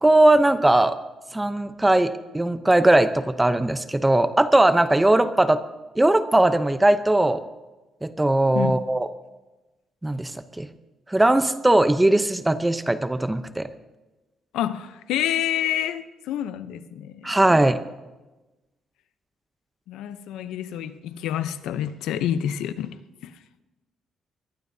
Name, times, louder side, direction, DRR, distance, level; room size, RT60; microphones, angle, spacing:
voice 1, 0.0-1.0 1.3-5.6 6.0-7.4 8.0-9.1 10.0-10.3 10.6-10.7 11.1-13.7 17.2-17.8, right 1 dB, 10° right, 0.7 m, -19 dB
voice 2, 14.5-17.4 19.9-23.4, left 10 dB, 90° left, 0.7 m, -28 dB
23.0 x 19.0 x 2.8 m
cardioid pair, 90°, 0 cm